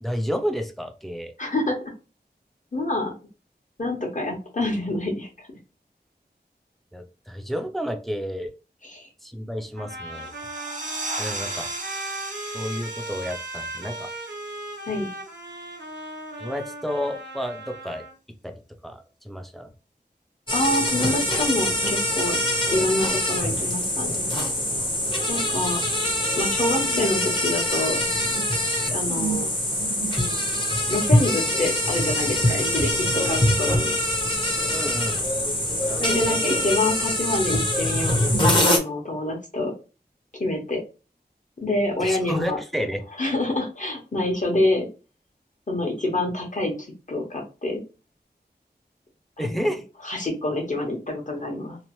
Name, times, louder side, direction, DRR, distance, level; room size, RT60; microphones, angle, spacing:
voice 1, 0.0-1.3 6.9-8.5 9.2-10.3 11.2-11.7 12.5-14.1 16.4-18.1 18.4-19.7 34.7-35.2 42.0-43.0 49.4-49.8, equal, ahead, 6 dB, 0.5 m, -30 dB
voice 2, 1.4-1.8 2.7-3.1 3.8-5.5 8.8-9.1 14.9-15.1 20.5-22.4 22.7-24.2 25.3-25.8 26.4-28.0 28.9-29.5 30.9-33.9 36.0-38.3 38.5-39.7 40.4-40.8 41.6-42.6 43.2-44.9 45.7-46.7 47.1-47.8 49.4-49.7 50.0-51.8, left 2 dB, 45° left, 0 dB, 1.0 m, -26 dB
sound 1, 9.7-18.1, right 1 dB, 85° right, 0.7 m, -37 dB
sound 2, 10.2-15.5, right 2 dB, 45° right, 0.6 m, -36 dB
sound 3, 20.5-38.8, left 1 dB, 30° left, 0.8 m, -24 dB
2.9 x 2.0 x 3.0 m, 0.32 s
wide cardioid pair, 60°, 17 cm